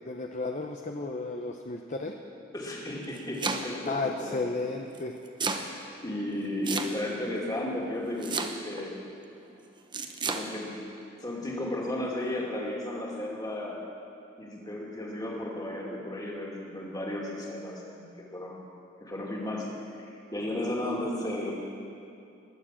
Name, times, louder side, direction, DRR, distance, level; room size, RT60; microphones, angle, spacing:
voice 1, 0.1-2.1 3.9-5.1, left 3 dB, 35° left, 3 dB, 0.7 m, -33 dB
voice 2, 2.5-4.4 5.5-9.0 10.3-10.8 11.2-13.8 14.4-18.1 18.3-18.6 19.0-19.7 20.0-21.5, left 1 dB, 20° left, -3 dB, 2.4 m, -34 dB
Domestic sounds home sounds, 2.9-3.9 4.9-5.7 6.6-7.3 8.2-8.8 9.9-10.5, right 4 dB, 25° right, 0.8 m, -32 dB
21.0 x 7.3 x 7.5 m, 2.6 s
head